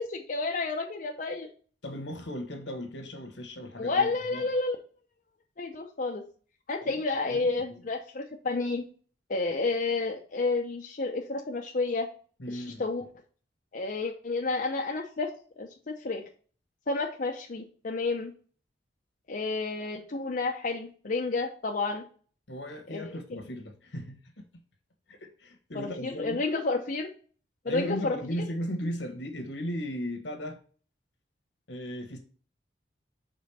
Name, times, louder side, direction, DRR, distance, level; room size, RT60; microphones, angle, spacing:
voice 1, 0.0-1.5 3.8-4.8 5.6-6.2 6.7-8.8 9.3-12.1 12.5-13.0 13.7-15.3 15.6-16.2 16.9-18.3 19.3-22.0 22.9-23.2 25.7-27.1 27.6-28.2, left 3 dB, 50° left, 0.7 m, -30 dB
voice 2, 1.8-4.4 6.8-7.0 7.3-7.4 7.7-7.8 12.4-12.8 22.5-24.5 25.1-26.4 27.6-30.6 31.7-32.2, equal, 80° left, 1.4 m, -36 dB
5.2 x 3.9 x 5.4 m
head